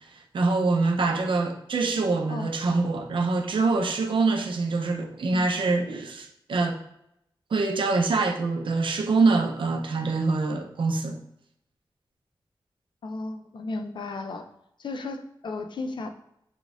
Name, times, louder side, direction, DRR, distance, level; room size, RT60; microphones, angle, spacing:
voice 1, 0.1-6.8 7.5-11.2, right 3 dB, 75° right, 0.5 m, -25 dB
voice 2, 13.0-14.5 14.8-16.1, left 3 dB, 65° left, 0.4 m, -34 dB
4.1 x 3.6 x 2.4 m
wide cardioid pair, 115°, 9 cm